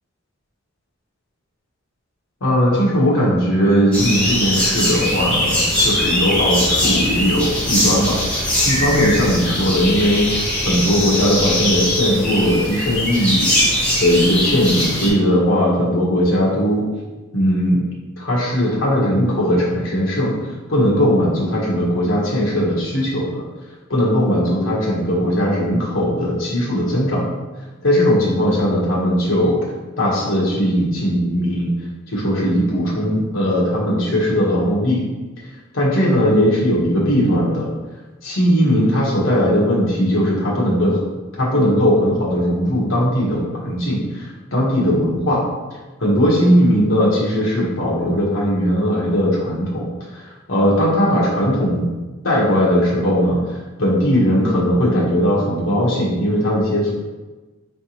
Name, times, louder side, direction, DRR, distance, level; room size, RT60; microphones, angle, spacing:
voice 1, 2.4-13.5 14.0-16.9 17.3-17.8 18.2-20.3 20.7-23.4 23.9-27.3 27.8-29.6 30.0-31.7 32.1-35.0 35.7-37.7 38.2-41.0 41.4-45.4 46.0-51.8 52.2-56.9, equal, 75° left, -5 dB, 1.2 m, -18 dB
sound 1, 3.9-15.1, left 1 dB, 5° left, 1.0 m, -20 dB
3.8 x 3.4 x 2.9 m, 1.2 s
head